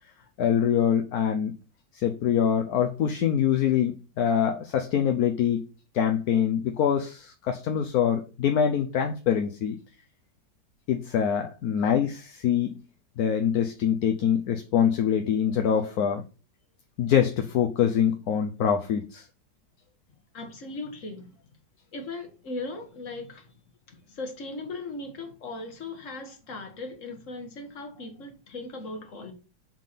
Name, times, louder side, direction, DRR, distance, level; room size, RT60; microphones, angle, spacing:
voice 1, 0.4-1.5 1.9-5.6 5.9-9.8 10.9-12.8 13.2-16.2 17.0-19.2, left 8 dB, 65° left, 1.1 m, -24 dB
voice 2, 20.3-21.3 21.9-23.5 23.9-29.3, left 2 dB, 45° left, 1.8 m, -38 dB
7.4 x 3.6 x 5.7 m
omnidirectional pair, 2.0 m